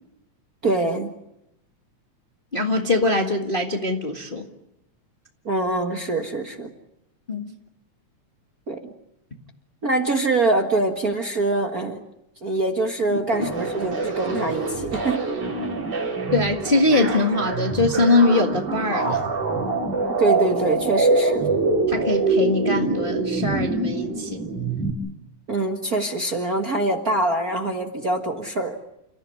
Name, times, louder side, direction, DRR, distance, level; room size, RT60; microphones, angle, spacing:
voice 1, 0.6-1.1 5.4-6.7 8.7-8.8 9.8-12.0 12.4-15.4 20.2-21.5 25.5-28.8, right 2 dB, 35° right, 4 dB, 1.6 m, -24 dB
voice 2, 2.5-4.5 7.3-7.5 13.1-13.2 16.3-19.3 21.9-24.4, left 2 dB, 25° left, 2 dB, 1.4 m, -22 dB
sound 1, 13.3-24.9, right 3 dB, 55° right, 5.1 m, -24 dB
29.5 x 15.0 x 9.6 m, 0.85 s
omnidirectional pair, 3.4 m